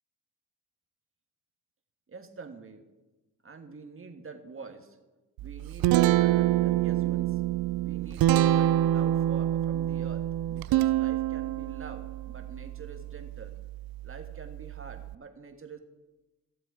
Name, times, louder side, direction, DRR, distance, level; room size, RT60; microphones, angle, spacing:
voice 1, 2.1-2.8 3.4-5.0 5.4-7.4 7.8-13.5 14.0-15.8, right 4 dB, 30° right, 5 dB, 1.7 m, -45 dB
Guitar, 5.4-15.1, right 13 dB, 50° right, 0.5 m, -27 dB
15.5 x 7.5 x 5.0 m, 1.1 s
hypercardioid pair, 60°, 45 cm